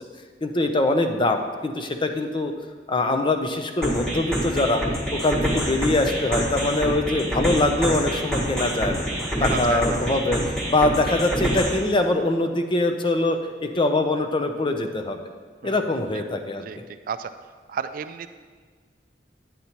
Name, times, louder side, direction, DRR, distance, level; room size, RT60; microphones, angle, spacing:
voice 1, 0.4-2.5 2.9-4.8 5.1-9.1 9.4-15.2 15.6-16.7, left 2 dB, 30° left, 6 dB, 0.6 m, -23 dB
sound 1, 3.8-11.8, equal, 5° left, 1.3 m, -27 dB
voice 2, 9.4-10.2 15.6-15.8 16.6-17.3 17.7-18.3, right 6 dB, 50° right, 10 dB, 0.3 m, -32 dB
9.5 x 9.1 x 2.9 m, 1.5 s
head